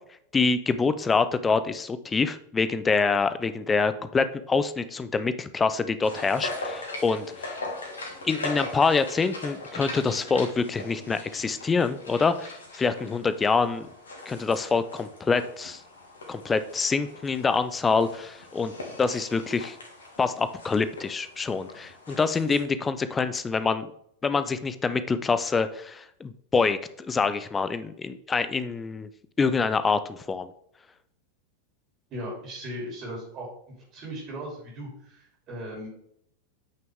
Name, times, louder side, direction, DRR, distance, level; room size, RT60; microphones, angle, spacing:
voice 1, 0.3-7.5 8.2-13.9 14.3-15.8 16.3-18.7 19.0-19.8 20.2-23.9 24.2-29.1 29.4-30.5, left 4 dB, 15° left, 12 dB, 0.5 m, -26 dB
sound 1, 6.0-22.6, left 2 dB, 70° left, 2.2 m, -40 dB
voice 2, 32.1-33.5 33.9-35.9, equal, 35° right, -2 dB, 3.0 m, -37 dB
8.7 x 6.0 x 3.5 m, 0.69 s
figure-of-eight pair, 90°, 0 cm